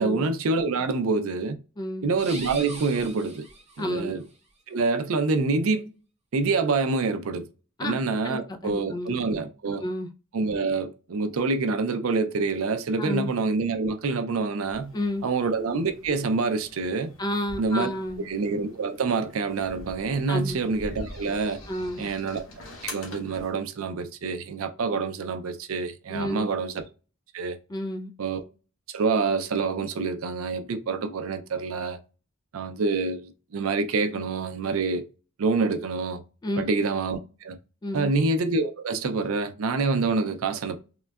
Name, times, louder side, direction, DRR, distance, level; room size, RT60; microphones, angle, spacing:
voice 1, 0.0-1.6 2.0-3.5 3.8-4.2 4.7-5.9 6.3-7.5 7.8-9.8 10.3-14.9 15.2-17.1 17.6-17.9 18.2-21.6 22.0-22.4 22.8-26.8 27.3-27.6 28.2-28.4 28.9-32.0 32.5-35.1 35.4-36.2 36.6-37.6 37.9-40.8, right 4 dB, 85° right, 0.5 m, -26 dB
voice 2, 1.8-2.2 3.8-4.2 7.8-8.0 8.2-9.1 9.8-10.1 13.0-13.3 14.9-15.3 17.2-18.3 20.3-20.7 21.7-22.1 26.1-26.5 27.7-28.1 36.4-36.6 37.8-38.1, left 1 dB, 20° left, 0.3 m, -31 dB
sound 1, 2.1-4.1, right 2 dB, 35° right, 0.6 m, -41 dB
sound 2, 14.7-23.6, left 2 dB, 70° left, 1.0 m, -45 dB
3.7 x 2.1 x 2.2 m
head